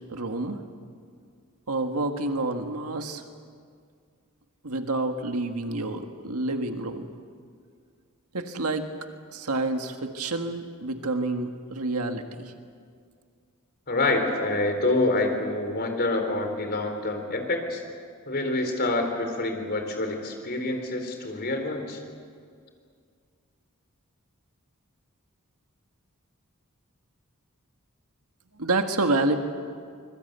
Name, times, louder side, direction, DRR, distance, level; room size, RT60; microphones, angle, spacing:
voice 1, 0.1-0.6 1.7-3.2 4.6-7.1 8.3-8.9 9.3-12.5 28.6-29.4, right 2 dB, 85° right, 5 dB, 1.7 m, -28 dB
voice 2, 13.9-17.8 18.3-22.0, left 2 dB, 45° left, 5 dB, 4.0 m, -27 dB
25.5 x 22.0 x 8.1 m, 2.1 s
head